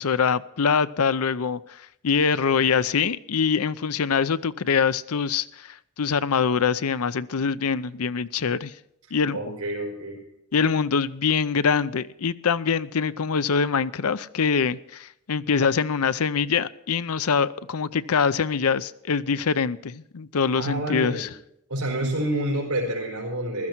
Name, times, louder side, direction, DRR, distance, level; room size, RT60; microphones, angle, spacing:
voice 1, 0.0-8.7 9.1-9.6 10.5-21.3, left 6 dB, 75° left, 0.6 m, -24 dB
voice 2, 9.3-10.2 20.6-21.3 21.7-23.7, right 1 dB, 80° right, 4.4 m, -28 dB
15.5 x 13.5 x 4.5 m
head